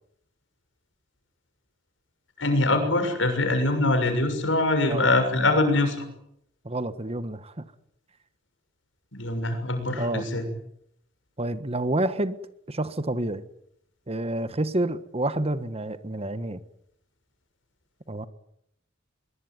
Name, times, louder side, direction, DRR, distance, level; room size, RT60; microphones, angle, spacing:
voice 1, 2.4-6.0 9.1-10.4, left 2 dB, 75° left, 8 dB, 6.6 m, -23 dB
voice 2, 6.6-7.6 10.0-10.3 11.4-12.4 12.7-13.4 14.1-16.6 18.1-18.3, right 1 dB, 30° right, 12 dB, 1.5 m, -28 dB
23.0 x 22.5 x 9.4 m, 0.75 s
head